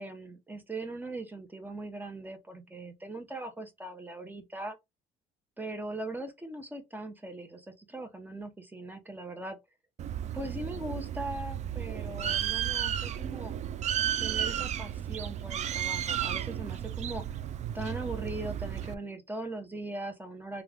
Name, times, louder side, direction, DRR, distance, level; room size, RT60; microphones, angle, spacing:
voice 1, 0.0-4.8 5.6-9.6 10.3-13.6 14.2-17.4 17.7-20.6, right 2 dB, 10° right, 0.9 m, -40 dB
Bird, 10.0-18.9, right 10 dB, 45° right, 0.4 m, -33 dB
3.1 x 2.4 x 3.5 m
cardioid pair, 110°, 17 cm